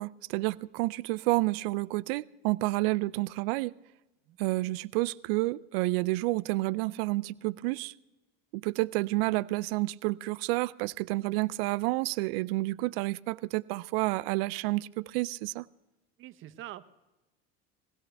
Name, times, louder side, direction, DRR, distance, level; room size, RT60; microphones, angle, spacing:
voice 1, 0.0-3.7 4.4-7.9 8.5-15.7, right 21 dB, 80° right, 0.5 m, -30 dB
voice 2, 16.2-16.9, right 14 dB, 45° right, 0.8 m, -44 dB
21.0 x 16.5 x 3.4 m
cardioid pair, 135°, 29 cm